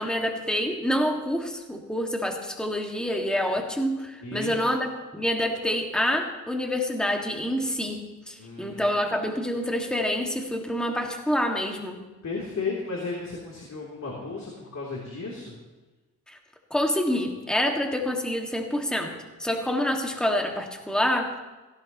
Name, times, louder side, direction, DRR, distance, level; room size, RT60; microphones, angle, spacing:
voice 1, 0.0-12.1 16.3-16.4 16.7-21.4, equal, ahead, 1 dB, 2.0 m, -27 dB
voice 2, 4.2-4.7 8.4-8.9 12.2-15.5, left 4 dB, 50° left, -3 dB, 3.4 m, -34 dB
17.5 x 17.0 x 3.1 m, 1.2 s
cardioid pair, 80°, 36 cm